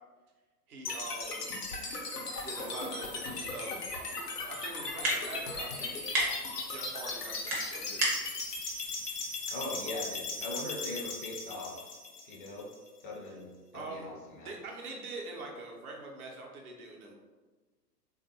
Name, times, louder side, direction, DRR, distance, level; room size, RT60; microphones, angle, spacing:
voice 1, 0.7-1.6 2.4-3.9 4.4-6.0 6.7-8.3 13.3-13.4 13.7-14.1 14.4-17.1, right 3 dB, 65° right, 0 dB, 0.8 m, -44 dB
sound 1, 0.8-12.9, left 3 dB, 75° left, 0.8 m, -38 dB
sound 2, 3.8-10.6, right 1 dB, 20° right, 0.6 m, -37 dB
voice 2, 9.5-11.8 12.2-12.7 13.0-14.5, left 1 dB, 35° left, -2 dB, 0.6 m, -40 dB
3.2 x 2.5 x 2.8 m, 1.3 s
figure-of-eight pair, 110°, 48 cm